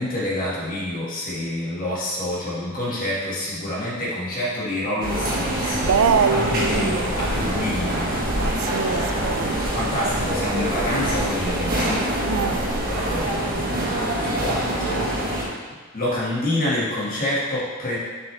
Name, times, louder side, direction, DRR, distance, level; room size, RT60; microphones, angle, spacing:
voice 1, 0.0-5.8 6.3-8.0 9.7-12.1 12.9-13.9 14.2-15.1 15.9-18.0, left 1 dB, 40° left, -6 dB, 1.9 m, -27 dB
sound 1, 5.0-15.5, right 1 dB, 40° right, 1.5 m, -25 dB
voice 2, 5.6-7.0 8.4-9.6 12.3-12.7, right 5 dB, 65° right, 9 dB, 0.4 m, -23 dB
7.0 x 6.3 x 3.3 m, 1.4 s
head